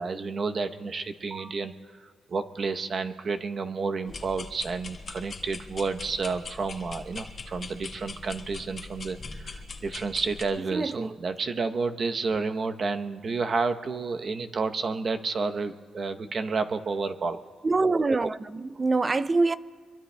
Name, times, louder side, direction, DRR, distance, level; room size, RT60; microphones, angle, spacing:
voice 1, 0.0-17.4, right 4 dB, 40° right, 0.8 m, -30 dB
sound 1, 4.1-10.4, left 4 dB, 40° left, 1.2 m, -41 dB
voice 2, 10.7-11.1 17.6-19.6, right 3 dB, 25° right, 0.4 m, -25 dB
26.0 x 23.0 x 2.2 m
cardioid pair, 120°, 0 cm